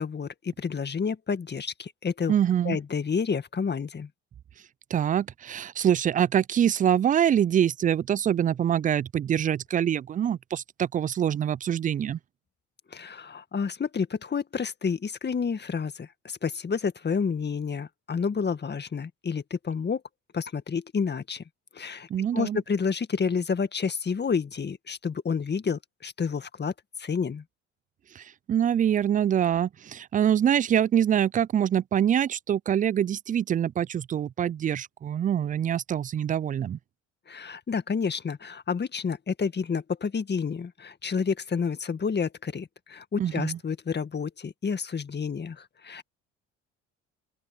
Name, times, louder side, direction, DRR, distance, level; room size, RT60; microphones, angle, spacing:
voice 1, 0.0-2.3 2.6-4.1 12.9-20.0 20.3-21.4 21.7-26.7 27.0-27.4 37.3-46.0, left 5 dB, 30° left, 2.0 m, -29 dB
voice 2, 2.3-2.8 4.9-12.2 22.1-22.6 28.2-36.8 43.2-43.6, right 9 dB, 25° right, 0.3 m, -25 dB
open air
hypercardioid pair, 65°, 33 cm